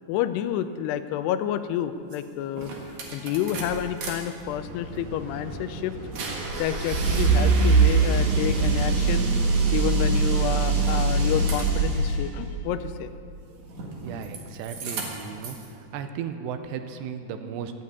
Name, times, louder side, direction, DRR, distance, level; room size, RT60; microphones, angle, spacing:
voice 1, 0.1-2.7 3.1-5.9 6.6-9.3 9.7-13.1, left 11 dB, 85° left, 11 dB, 2.5 m, -29 dB
sound 1, 2.1-2.2 2.6-4.1 4.5-12.2 13.7-14.4 14.7-15.6, right 4 dB, 55° right, 2.5 m, -24 dB
voice 2, 14.0-15.6 15.9-17.7, right 7 dB, 85° right, 8 dB, 2.9 m, -35 dB
12.5 x 8.5 x 8.3 m, 2.5 s
omnidirectional pair, 4.8 m